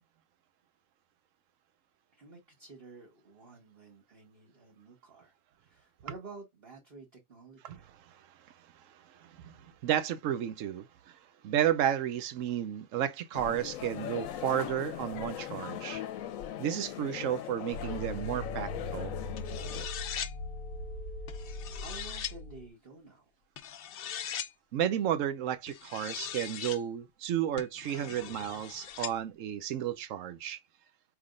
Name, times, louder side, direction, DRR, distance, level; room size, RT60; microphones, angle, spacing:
voice 1, 2.1-7.9 21.3-21.4 21.8-23.3, right 3 dB, 40° right, 1.6 m, -51 dB
voice 2, 9.2-11.2 11.4-16.0 16.6-19.1 24.7-30.6, right 10 dB, 65° right, 0.9 m, -32 dB
sound 1, 13.3-19.9, left 11 dB, 70° left, 1.0 m, -40 dB
sound 2, 17.7-22.7, left 2 dB, 40° left, 1.0 m, -40 dB
sound 3, 19.4-20.3 21.3-22.3 23.6-24.5 25.7-26.8 27.6-29.1, left 9 dB, 90° left, 0.5 m, -40 dB
4.9 x 3.5 x 2.5 m
omnidirectional pair, 1.5 m